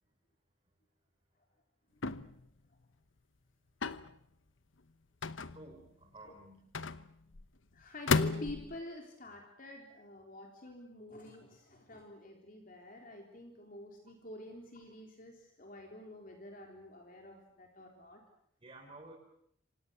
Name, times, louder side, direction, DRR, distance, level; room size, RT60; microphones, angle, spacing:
sound 1, 2.0-2.5 3.8-4.1 5.2-5.9 6.7-7.4 8.1-8.8, left 4 dB, 75° left, 1.0 m, -33 dB
voice 1, 5.5-6.6 18.6-19.1, right 2 dB, 30° right, 0 dB, 4.6 m, -53 dB
voice 2, 7.7-18.2, left 1 dB, 45° left, 2 dB, 3.7 m, -48 dB
27.5 x 26.5 x 7.0 m, 0.70 s
head